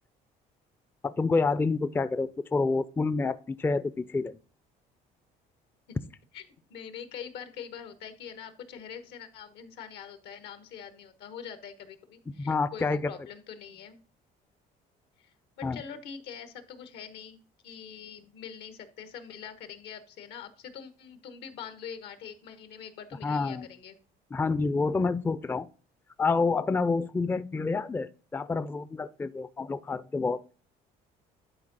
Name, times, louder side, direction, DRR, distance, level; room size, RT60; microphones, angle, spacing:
voice 1, 1.0-4.4 12.4-13.1 15.6-15.8 23.2-23.7 24.3-25.7 26.2-30.4, left 4 dB, 10° left, 0.4 m, -28 dB
voice 2, 6.7-14.0 15.2-24.0, left 7 dB, 85° left, 1.3 m, -44 dB
11.0 x 4.6 x 3.9 m
cardioid pair, 110°, 17 cm